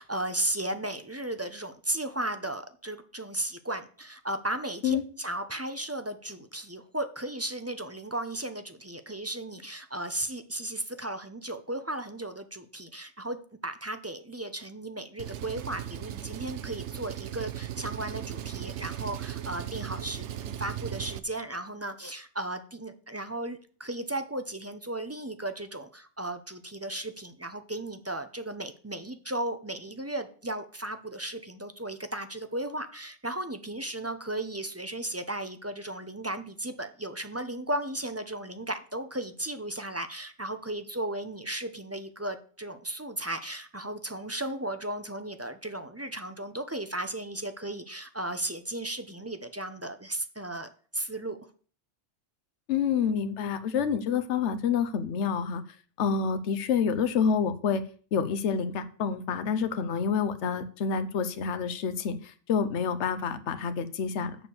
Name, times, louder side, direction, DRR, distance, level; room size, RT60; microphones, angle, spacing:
voice 1, 0.0-13.4 13.6-51.4, right 1 dB, 15° right, 9 dB, 0.7 m, -35 dB
Engine, 15.2-21.2, right 11 dB, 75° right, 1.0 m, -37 dB
voice 2, 52.7-55.6 56.0-57.8 58.1-64.4, left 6 dB, 75° left, 10 dB, 1.1 m, -28 dB
7.0 x 6.7 x 7.0 m, 0.42 s
omnidirectional pair, 1.2 m